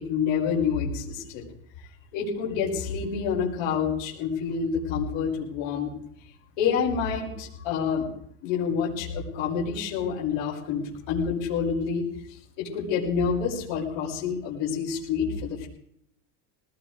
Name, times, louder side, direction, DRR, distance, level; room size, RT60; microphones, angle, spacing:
voice 1, 0.0-1.5 2.1-5.9 6.6-8.1 8.4-12.0 12.6-15.7, left 6 dB, 85° left, -4 dB, 6.0 m, -28 dB
21.5 x 19.5 x 3.4 m, 0.71 s
cardioid pair, 170°, 39 cm